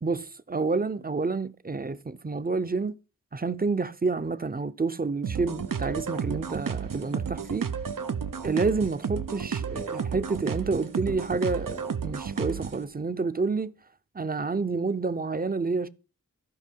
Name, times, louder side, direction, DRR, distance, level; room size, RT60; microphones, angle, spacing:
voice 1, 0.0-2.9 3.3-7.7 8.4-13.7 14.1-15.9, right 4 dB, 30° right, 0.6 m, -29 dB
sound 1, 5.2-12.8, right 6 dB, 80° right, 0.7 m, -32 dB
13.5 x 5.2 x 4.6 m
wide cardioid pair, 50°, 32 cm